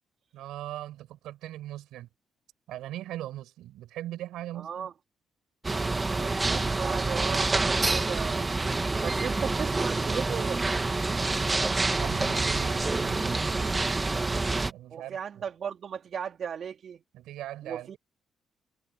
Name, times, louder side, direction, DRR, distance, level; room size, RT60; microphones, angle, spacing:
voice 1, 0.3-2.1 2.7-4.9 12.0-13.8 14.7-15.4 17.1-18.0, right 14 dB, 85° right, 6.9 m, -40 dB
voice 2, 4.5-4.9 6.2-8.5 9.0-10.6 14.9-17.0 17.6-18.0, right 7 dB, 55° right, 3.1 m, -36 dB
sound 1, 5.6-14.7, right 3 dB, 20° right, 2.0 m, -27 dB
cardioid pair, 90°, 0 cm